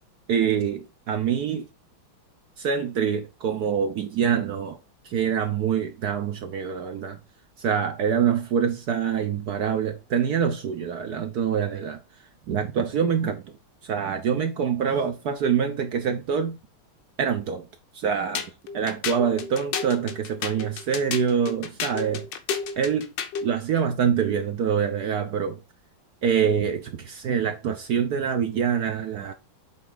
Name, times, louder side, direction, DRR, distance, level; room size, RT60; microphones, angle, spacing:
voice 1, 0.3-1.7 2.6-4.8 5.0-7.2 7.6-12.0 12.5-13.5 13.8-16.6 17.2-17.7 17.9-22.3 22.8-23.1 23.4-25.6 26.2-29.3, right 7 dB, 60° right, 1.1 m, -25 dB
sound 1, 18.3-23.5, left 6 dB, 65° left, 1.5 m, -32 dB
8.1 x 3.7 x 3.7 m
omnidirectional pair, 2.3 m